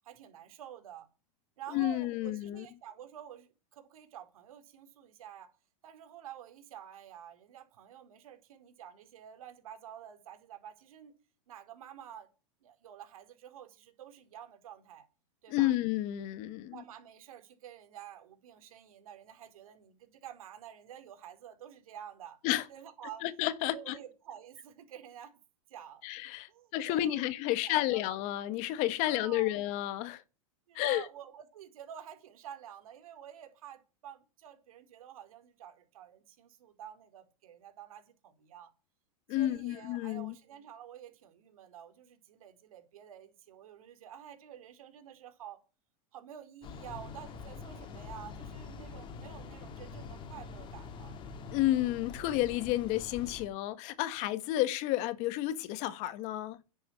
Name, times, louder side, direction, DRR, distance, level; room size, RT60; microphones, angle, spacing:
voice 1, 0.0-1.1 1.6-5.5 5.8-11.1 11.5-12.3 12.6-15.1 15.4-15.7 16.7-22.4 22.7-23.3 23.7-25.3 25.7-26.0 26.5-28.0 29.0-29.6 30.7-38.7 39.3-45.6 46.1-51.6, right 10 dB, 75° right, 4.4 m, -49 dB
voice 2, 1.7-2.6 15.5-16.8 22.4-22.6 23.2-23.9 26.0-30.2 30.7-31.0 39.3-40.3 51.5-56.6, left 15 dB, 40° left, 1.5 m, -31 dB
sound 1, 46.6-53.5, left 4 dB, 25° left, 2.5 m, -45 dB
11.0 x 8.5 x 10.0 m
supercardioid pair, 150°, 18 cm